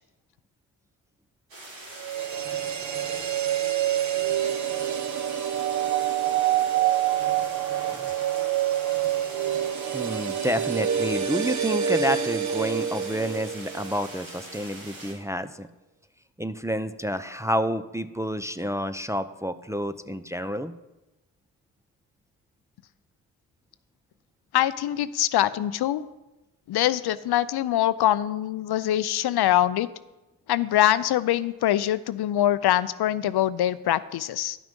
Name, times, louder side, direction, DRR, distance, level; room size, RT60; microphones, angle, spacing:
sound 1, 1.5-15.1, right 2 dB, 75° right, 3.6 m, -43 dB
sound 2, 2.0-14.1 14.4-14.5, right 10 dB, 40° right, 0.8 m, -27 dB
voice 1, 9.9-15.7 16.4-20.7, equal, 5° right, 9 dB, 0.5 m, -29 dB
voice 2, 24.5-26.0 26.7-29.9 30.5-34.6, left 12 dB, 60° left, 15 dB, 0.5 m, -23 dB
11.0 x 6.0 x 5.3 m, 1.0 s
supercardioid pair, 50°, 43 cm